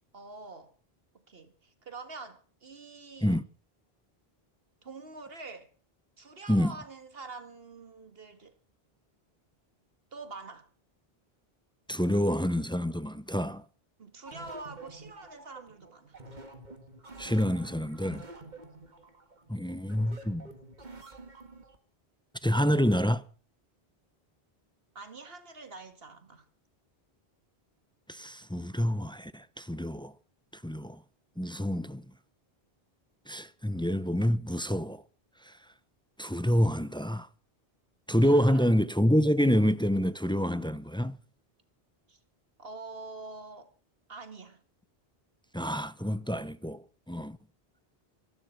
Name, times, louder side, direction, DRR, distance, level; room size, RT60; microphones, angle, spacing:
voice 1, 0.1-0.7 1.3-3.4 4.8-5.7 6.2-8.5 10.1-10.7 14.0-16.2 25.0-26.5 38.2-38.6 42.1-42.2 42.6-43.7 44.1-44.6, right 3 dB, 70° right, 2.1 m, -45 dB
voice 2, 11.9-13.6 17.2-18.2 19.5-20.5 22.4-23.2 28.1-30.1 30.6-31.0 31.4-32.0 33.3-35.0 35.5-35.6 36.2-37.3 38.1-41.2 45.5-47.4, equal, 5° left, 0.5 m, -27 dB
sound 1, 14.3-21.8, right 2 dB, 45° right, 2.2 m, -49 dB
25.0 x 12.0 x 4.5 m
omnidirectional pair, 1.0 m